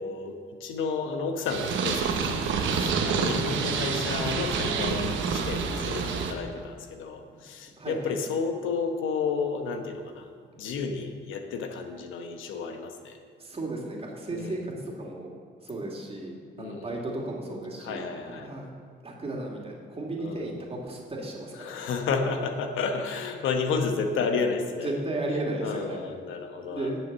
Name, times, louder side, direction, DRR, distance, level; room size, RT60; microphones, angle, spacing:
voice 1, 0.0-10.3 10.6-13.2 14.3-14.6 16.6-16.9 17.8-18.5 20.2-20.5 21.6-24.9 25.6-26.9, left 5 dB, 85° left, 6 dB, 1.0 m, -31 dB
Purr, 1.5-6.3, right 5 dB, 75° right, 1.1 m, -28 dB
voice 2, 3.1-3.5 7.1-7.3 7.8-8.2 13.4-15.3 15.6-18.0 18.4-18.7 19.0-21.9 24.8-26.0 26.7-27.0, right 2 dB, 30° right, -1 dB, 2.4 m, -34 dB
10.0 x 6.5 x 6.7 m, 2.2 s
cardioid pair, 90°, 20 cm